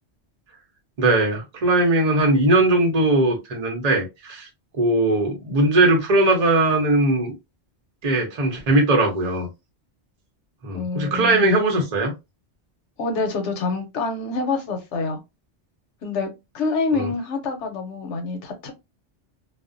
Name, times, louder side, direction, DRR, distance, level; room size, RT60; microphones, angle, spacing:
voice 1, 1.0-4.5 4.8-7.3 8.0-9.5 10.6-12.1 16.9-17.1, right 2 dB, 40° right, 0.8 m, -19 dB
voice 2, 10.7-11.5 13.0-15.2 16.0-18.7, left 3 dB, 90° left, 1.0 m, -26 dB
2.5 x 2.0 x 2.4 m
omnidirectional pair, 1.2 m